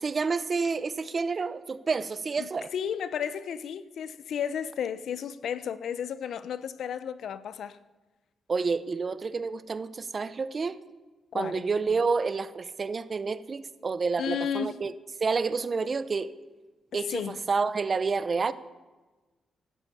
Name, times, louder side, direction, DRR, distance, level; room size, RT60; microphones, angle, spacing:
voice 1, 0.0-2.7 8.5-10.8 11.3-14.9 15.2-16.3 16.9-18.5, right 4 dB, 40° right, 0.8 m, -29 dB
voice 2, 2.4-7.8 11.3-11.6 14.2-14.7 17.1-17.4, left 8 dB, 75° left, 0.6 m, -33 dB
15.5 x 12.0 x 5.5 m
cardioid pair, 75°, 0 cm